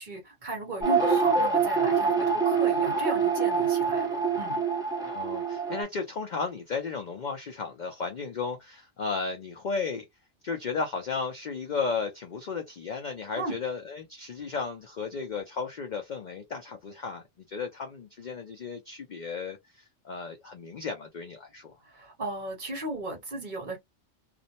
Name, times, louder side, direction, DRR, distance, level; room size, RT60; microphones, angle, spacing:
voice 1, 0.0-4.6 13.4-13.6 21.9-23.8, right 1 dB, 40° right, 1.0 m, -35 dB
sound 1, 0.8-5.8, right 5 dB, 5° right, 0.6 m, -25 dB
voice 2, 5.0-10.0 10.4-21.8, left 5 dB, 55° left, 0.5 m, -34 dB
2.5 x 2.0 x 2.7 m
omnidirectional pair, 1.3 m